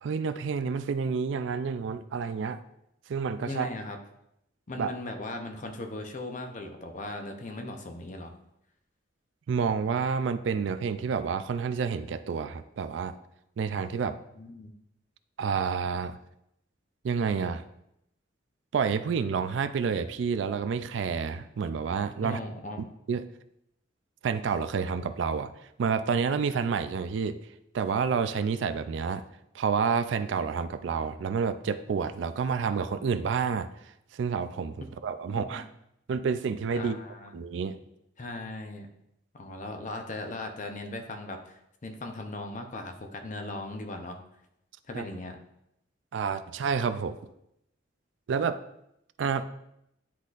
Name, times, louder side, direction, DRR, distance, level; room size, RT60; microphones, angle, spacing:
voice 1, 0.0-2.6 3.1-3.7 4.8-4.9 9.5-13.1 13.6-14.2 15.4-16.2 17.0-17.6 18.7-22.4 23.1-23.2 24.2-25.5 25.8-27.4 27.7-29.2 29.5-33.7 34.1-35.7 36.1-37.0 37.3-37.8 44.9-45.0 46.1-47.3 48.3-48.6 49.2-49.5, right 6 dB, 70° right, 11 dB, 0.4 m, -29 dB
voice 2, 3.5-4.0 4.7-8.3 14.0-14.7 22.2-22.8 35.2-35.7 36.8-37.3 38.2-38.9 39.3-44.2 44.9-45.4, left 2 dB, 40° left, 4 dB, 0.7 m, -38 dB
10.0 x 4.0 x 2.4 m, 0.79 s
head